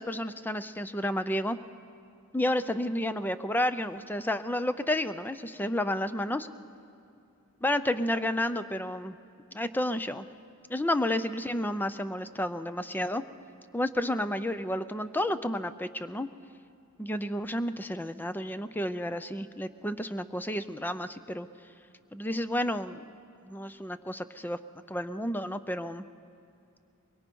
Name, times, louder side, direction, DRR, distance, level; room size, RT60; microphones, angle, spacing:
voice 1, 0.0-1.6 2.3-6.5 7.6-9.2 9.5-10.3 10.7-13.2 13.7-16.3 17.0-21.5 22.1-23.0 23.5-24.6 24.9-26.0, left 1 dB, 10° left, 12 dB, 0.5 m, -31 dB
23.0 x 22.5 x 5.4 m, 2.6 s
head